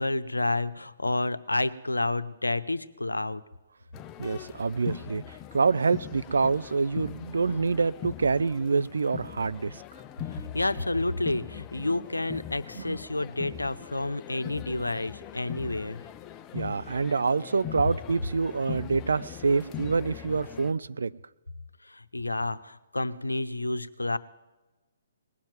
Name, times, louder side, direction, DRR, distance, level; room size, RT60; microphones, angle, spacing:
voice 1, 0.0-3.4 10.3-16.0 21.8-24.2, left 2 dB, 85° left, 12 dB, 0.8 m, -30 dB
sound 1, 3.9-20.7, left 11 dB, 25° left, 0.5 m, -41 dB
voice 2, 4.2-9.8 12.8-13.0 16.5-21.1, right 4 dB, 70° right, 15 dB, 0.5 m, -26 dB
19.5 x 7.3 x 9.4 m, 1.1 s
figure-of-eight pair, 130°, 0 cm